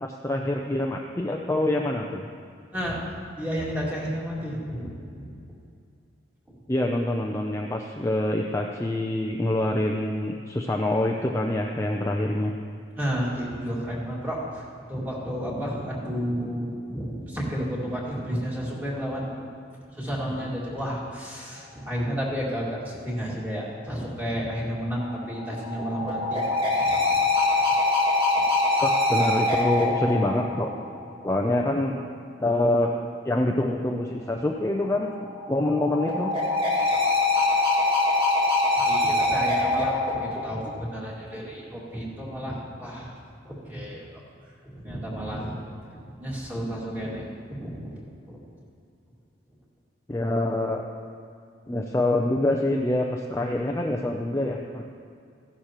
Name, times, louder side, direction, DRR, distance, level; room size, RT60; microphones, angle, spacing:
voice 1, 0.0-2.2 6.7-12.5 28.8-30.7 31.2-31.9 32.4-32.9 33.2-35.1 35.5-36.3 50.1-50.9 51.7-54.8, left 1 dB, 15° left, 1 dB, 0.4 m, -25 dB
voice 2, 3.4-4.9 5.2-5.3 13.0-19.3 19.9-26.5 26.8-27.2 38.8-43.1 43.4-44.2 44.6-45.6 46.2-47.9 48.3-48.4, equal, 10° right, -5 dB, 2.1 m, -31 dB
sound 1, 24.9-31.3 34.9-40.8, left 2 dB, 25° right, 2.1 m, -24 dB
15.0 x 11.5 x 3.0 m, 2.4 s
head